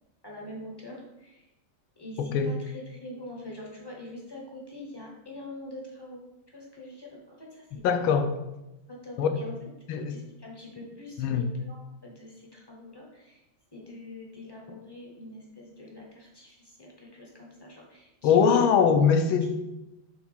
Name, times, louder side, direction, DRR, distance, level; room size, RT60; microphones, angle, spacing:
voice 1, 0.2-1.5 2.0-8.1 8.9-9.6 10.1-13.4 13.7-18.8, left 1 dB, 20° left, -2 dB, 0.6 m, -44 dB
voice 2, 7.8-8.3 9.2-9.4 9.9-10.2 11.2-11.5 18.2-19.6, left 6 dB, 75° left, 7 dB, 1.4 m, -22 dB
6.0 x 3.6 x 5.5 m, 0.95 s
omnidirectional pair, 2.4 m